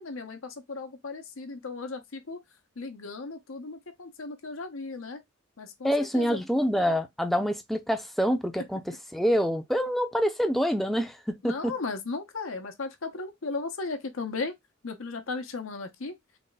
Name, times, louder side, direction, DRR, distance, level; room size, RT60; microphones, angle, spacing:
voice 1, 0.0-2.4 2.8-5.2 5.6-6.4 8.6-8.7 11.4-14.5 14.8-16.1, left 3 dB, 75° left, 0.8 m, -36 dB
voice 2, 5.8-8.8 9.1-11.7, equal, ahead, 0.5 m, -26 dB
3.4 x 2.2 x 4.0 m
head